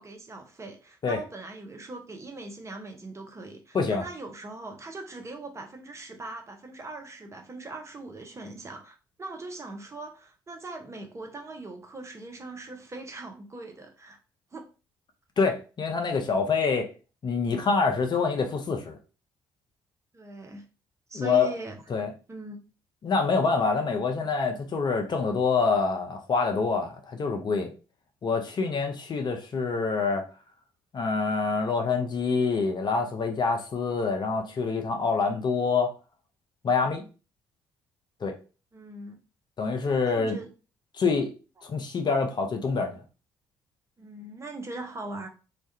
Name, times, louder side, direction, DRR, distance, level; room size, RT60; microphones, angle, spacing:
voice 1, 0.0-14.2 14.5-14.6 20.1-20.6 21.1-21.8 22.3-22.6 38.7-39.2 40.0-40.5 44.0-45.3, right 2 dB, 25° right, 0.6 m, -40 dB
voice 2, 15.4-16.9 17.2-19.0 21.1-21.6 21.9-22.1 23.0-27.7 28.2-30.2 30.9-35.9 36.6-37.1 38.2-38.3 39.6-40.4 40.9-41.3 41.6-43.0, left 4 dB, 40° left, 0.5 m, -26 dB
2.3 x 2.1 x 2.7 m
figure-of-eight pair, 45°, 12 cm